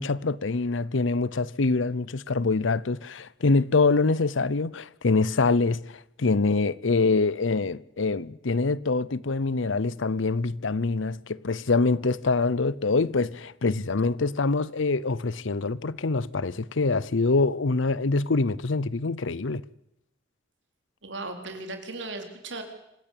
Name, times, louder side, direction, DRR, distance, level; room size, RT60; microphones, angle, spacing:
voice 1, 0.0-19.6, left 3 dB, 80° left, 0.8 m, -25 dB
voice 2, 21.0-22.6, right 2 dB, 70° right, 4.1 m, -36 dB
26.0 x 16.5 x 8.6 m
head